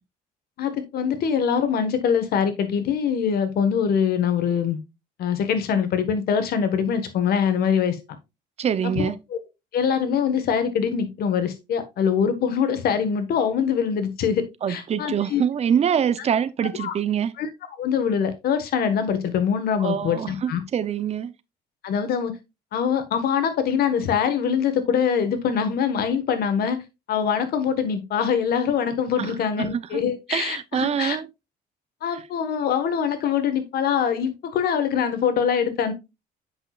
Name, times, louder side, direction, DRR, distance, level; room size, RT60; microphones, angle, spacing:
voice 1, 0.6-4.8 5.2-8.0 8.8-9.1 9.7-15.4 16.8-17.0 17.4-17.5 17.8-20.6 21.8-22.3 22.7-26.8 27.1-31.2 32.0-35.9, left 7 dB, 65° left, 1.4 m, -23 dB
voice 2, 8.6-9.2 14.6-17.3 19.8-21.3 29.2-29.3 29.6-30.0 30.3-31.3 32.1-32.2, right 8 dB, 40° right, 0.6 m, -25 dB
7.7 x 6.1 x 2.4 m
cardioid pair, 110°, 17 cm